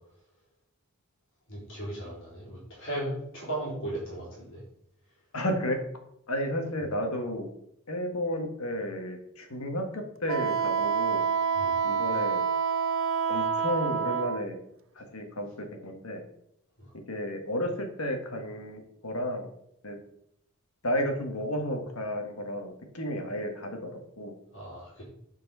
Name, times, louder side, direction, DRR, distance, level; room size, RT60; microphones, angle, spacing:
voice 1, 1.5-4.6 11.5-11.8 24.5-25.0, right 1 dB, 60° left, -5 dB, 3.9 m, -36 dB
voice 2, 5.3-5.8 6.3-7.5 7.9-11.2 11.8-12.4 13.3-14.6 15.0-15.5 15.8-16.2 17.1-19.5 19.8-20.0 20.8-24.3, equal, 75° left, 4 dB, 1.7 m, -32 dB
Wind instrument woodwind instrument, 10.3-14.4, right 6 dB, 60° right, 0.6 m, -27 dB
8.8 x 4.8 x 5.6 m, 0.74 s
head